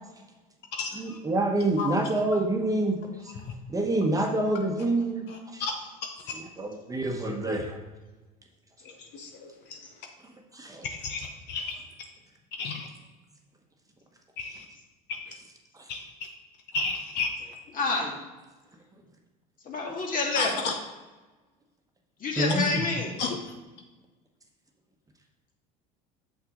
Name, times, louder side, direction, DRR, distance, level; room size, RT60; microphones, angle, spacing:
voice 1, 1.0-3.0 3.7-5.2 5.5-5.6 6.6-7.8 10.5-10.9 22.4-22.8, right 2 dB, 15° right, 2 dB, 1.1 m, -26 dB
voice 2, 5.3-5.7 8.8-9.8 10.9-11.8 12.6-12.9 14.4-14.6 15.1-15.2 15.9-16.0 16.7-17.3 20.4-20.8 23.2-23.4, left 4 dB, 60° left, 3 dB, 0.9 m, -32 dB
voice 3, 17.7-18.2 19.7-20.6 22.2-23.1, left 3 dB, 45° left, 0 dB, 1.8 m, -28 dB
6.6 x 5.7 x 3.8 m, 1.2 s
supercardioid pair, 90°, 20 cm